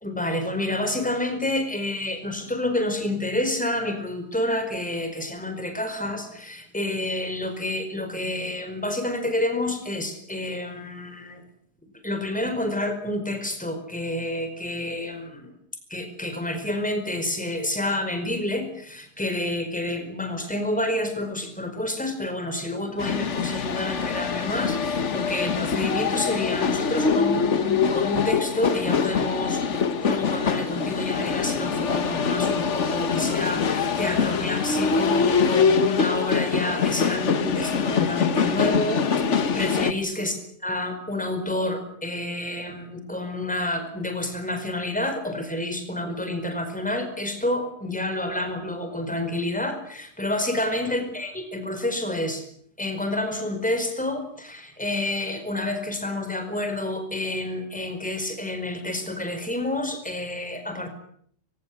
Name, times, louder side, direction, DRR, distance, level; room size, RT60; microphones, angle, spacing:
voice 1, 0.0-11.4 12.0-15.5 15.9-39.0 39.3-40.4 40.6-52.4 52.8-60.9, left 1 dB, 5° left, 7 dB, 4.9 m, -29 dB
sound 1, 23.0-39.9, left 5 dB, 50° left, 1.4 m, -24 dB
25.5 x 17.5 x 9.9 m, 0.66 s
omnidirectional pair, 1.7 m